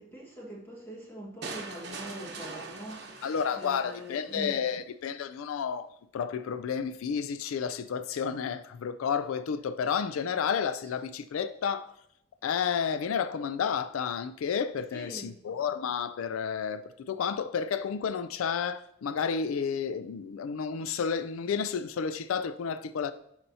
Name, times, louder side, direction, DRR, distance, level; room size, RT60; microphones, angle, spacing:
voice 1, 0.0-3.2 3.5-4.6 8.1-8.2 14.9-15.4, equal, 10° left, 1.6 m, -43 dB
sound 1, 1.4-4.4, right 3 dB, 55° right, 1.0 m, -42 dB
voice 2, 3.2-11.9 12.4-23.1, left 6 dB, 90° left, 0.4 m, -31 dB
10.5 x 4.4 x 2.8 m
head